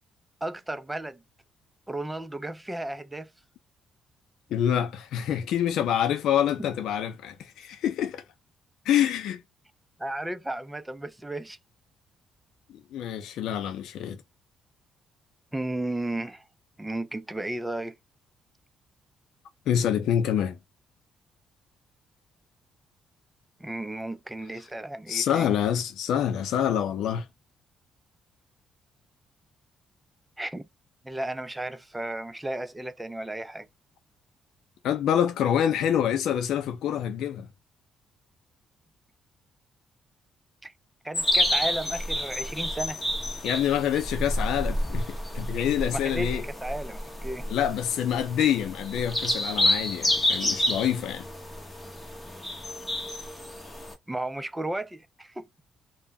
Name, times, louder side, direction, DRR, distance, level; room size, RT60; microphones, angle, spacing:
voice 1, 0.4-1.2 1.9-3.3 10.0-11.6 15.5-16.4 16.8-18.0 23.6-25.5 30.4-30.7 31.0-33.7 40.6-40.7 41.0-43.0 45.9-47.5 54.1-55.5, right 1 dB, 10° right, 0.4 m, -34 dB
voice 2, 4.5-8.2 8.9-9.4 12.7-14.2 19.7-20.6 25.1-27.3 34.8-37.5 43.4-46.4 47.5-51.3, left 9 dB, 80° left, 0.5 m, -26 dB
sound 1, 41.1-53.9, left 1 dB, 20° left, 0.8 m, -29 dB
2.2 x 2.1 x 3.4 m
cardioid pair, 90°, 0 cm